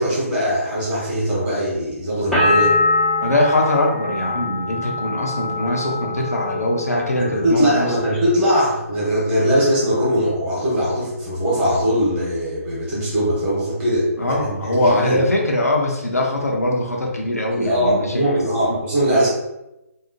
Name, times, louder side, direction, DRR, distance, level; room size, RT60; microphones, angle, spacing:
voice 1, 0.0-2.7 6.9-14.1 14.4-15.2 17.5-19.3, equal, 15° right, -7 dB, 1.0 m, -20 dB
sound 1, 2.3-7.9 8.2-9.0, left 2 dB, ahead, 0.7 m, -24 dB
voice 2, 3.2-7.9 14.2-18.3, left 1 dB, 85° left, 0 dB, 0.7 m, -21 dB
2.7 x 2.0 x 2.6 m, 0.92 s
figure-of-eight pair, 140°, 8 cm